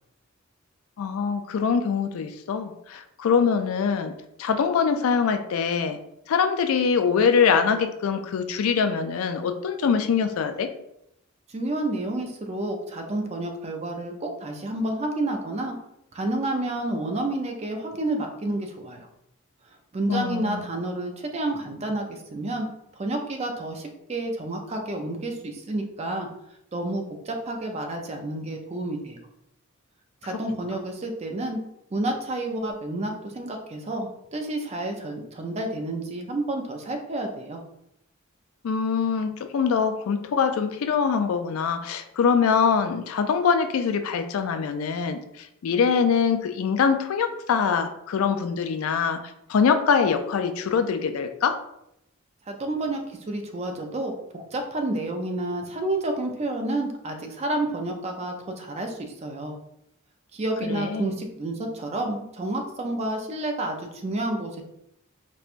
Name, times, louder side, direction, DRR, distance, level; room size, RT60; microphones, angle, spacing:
voice 1, 1.0-4.1 4.4-6.0 6.3-10.7 20.1-20.7 38.6-49.2 49.5-51.6 60.6-61.1, left 6 dB, 80° left, 8 dB, 0.3 m, -23 dB
voice 2, 11.5-15.8 16.1-19.1 19.9-22.7 22.9-26.3 26.7-29.2 30.2-31.6 31.9-37.6 52.5-59.6 60.3-64.6, right 1 dB, 30° right, 3 dB, 0.4 m, -30 dB
4.3 x 2.2 x 2.5 m, 0.80 s
head